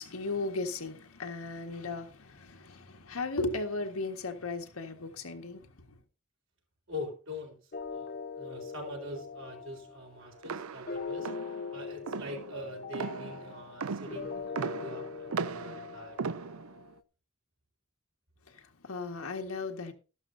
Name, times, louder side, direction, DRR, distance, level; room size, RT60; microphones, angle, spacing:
voice 1, 0.0-5.8 18.5-19.9, left 3 dB, 85° left, 1.7 m, -36 dB
voice 2, 6.9-7.5 7.9-11.3 11.7-16.2, left 1 dB, 60° right, 4.2 m, -43 dB
sound 1, 7.7-16.9, left 5 dB, 45° left, 0.7 m, -42 dB
sound 2, 10.4-16.9, right 5 dB, 80° right, 0.6 m, -38 dB
13.0 x 12.0 x 2.7 m
head